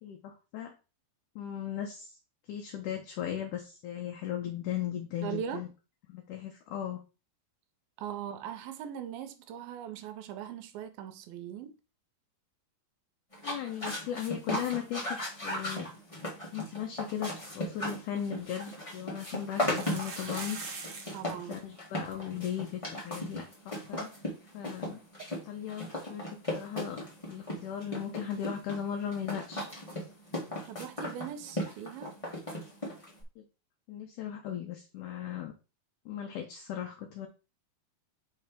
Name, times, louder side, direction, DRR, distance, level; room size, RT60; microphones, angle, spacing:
voice 1, 0.0-0.7 1.4-2.1 2.5-5.7 6.1-7.0 13.4-15.2 15.4-15.9 16.5-20.6 21.3-24.1 24.5-25.0 25.5-27.0 27.3-29.7 33.4-33.5 33.9-35.5 36.1-37.3, left 10 dB, 75° left, 2.0 m, -37 dB
voice 2, 5.2-5.7 8.0-11.8 21.1-21.6 30.7-32.2, right 9 dB, 80° right, 2.4 m, -40 dB
sound 1, 13.3-33.2, left 1 dB, 35° left, 0.5 m, -37 dB
sound 2, 18.3-18.4 19.5-21.3 21.6-21.7 21.9-22.1 22.7-22.8 23.1-23.2 25.2-25.3, right 4 dB, 50° right, 1.8 m, -42 dB
6.0 x 3.2 x 5.0 m
omnidirectional pair, 4.3 m